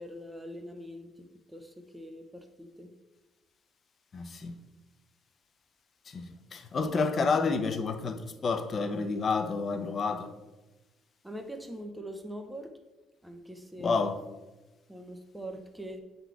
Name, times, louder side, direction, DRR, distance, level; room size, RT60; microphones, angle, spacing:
voice 1, 0.0-2.9 6.8-6.9 11.2-12.7 13.2-14.0 14.9-16.0, equal, 5° right, 0.6 m, -43 dB
voice 2, 4.1-4.5 6.1-10.3 13.8-14.2, left 4 dB, 35° left, 0.6 m, -29 dB
7.9 x 4.0 x 4.6 m
cardioid pair, 140°, 0 cm